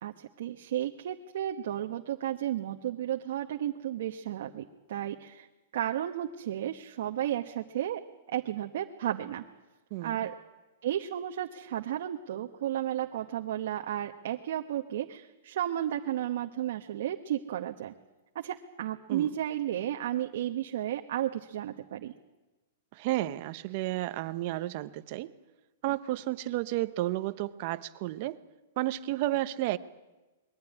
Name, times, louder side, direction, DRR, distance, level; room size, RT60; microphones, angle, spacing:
voice 1, 0.0-5.5 5.7-8.0 8.3-9.4 10.0-10.3 10.8-17.9 18.3-22.1, right 11 dB, 60° right, 4 dB, 1.1 m, -33 dB
voice 2, 22.9-25.3 25.8-28.4 28.8-29.8, right 16 dB, 40° right, 13 dB, 0.8 m, -32 dB
21.5 x 14.5 x 10.0 m, 1.1 s
hypercardioid pair, 165°, 0 cm